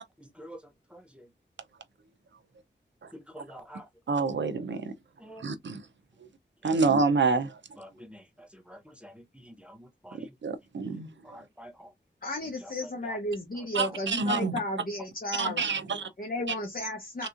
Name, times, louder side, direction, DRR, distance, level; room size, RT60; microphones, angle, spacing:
voice 1, 3.1-3.8 5.2-5.4 8.1-8.2 8.7-9.1 9.4-10.3 11.2-11.9 13.0-13.1, equal, 5° right, 0.7 m, -47 dB
voice 2, 4.1-4.9 5.4-5.8 6.6-7.6 10.1-11.4 13.7-14.6 15.4-16.1 17.2-17.3, right 4 dB, 75° right, 0.6 m, -28 dB
voice 3, 12.2-15.7 16.2-17.3, left 1 dB, 50° left, 0.9 m, -33 dB
3.4 x 2.9 x 2.5 m
wide cardioid pair, 90°, 19 cm